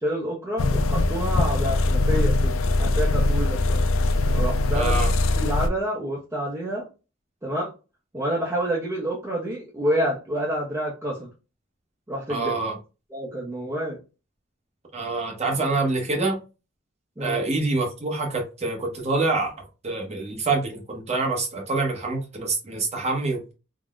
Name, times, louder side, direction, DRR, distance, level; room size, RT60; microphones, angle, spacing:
voice 1, 0.0-3.8 4.3-4.9 5.4-6.8 7.4-7.7 8.1-11.3 12.1-12.5 13.1-14.0 17.2-17.4, equal, 15° right, -3 dB, 0.6 m, -28 dB
sound 1, 0.6-5.7, left 2 dB, 80° left, 0.4 m, -22 dB
voice 2, 4.7-5.1 12.3-12.7 14.9-16.4 17.2-19.5 19.8-23.5, right 3 dB, 35° right, 0 dB, 0.9 m, -26 dB
3.7 x 2.1 x 2.4 m, 0.31 s
head